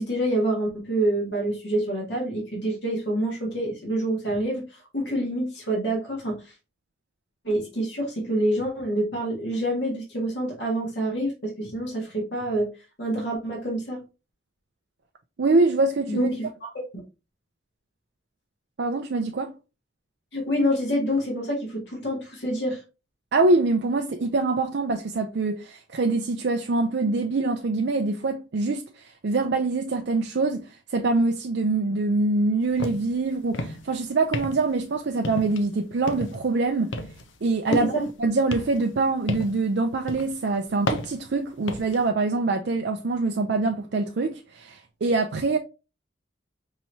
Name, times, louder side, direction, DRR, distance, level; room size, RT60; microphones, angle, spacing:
voice 1, 0.0-6.5 7.4-12.7 13.0-14.0 16.1-16.7 20.3-22.8 37.7-38.0, right 1 dB, 70° left, 1.8 m, -27 dB
voice 2, 15.4-16.3 18.8-19.5 23.3-36.9 37.4-37.9 38.2-45.6, right 3 dB, 65° right, 0.5 m, -24 dB
sound 1, 32.8-33.1 33.4-33.9 34.3-34.8 35.2-35.7 36.1-36.5 36.9-38.1 38.5-39.7 40.1-40.4 40.9-42.0, left 1 dB, 85° left, 0.7 m, -32 dB
5.6 x 3.0 x 2.7 m
head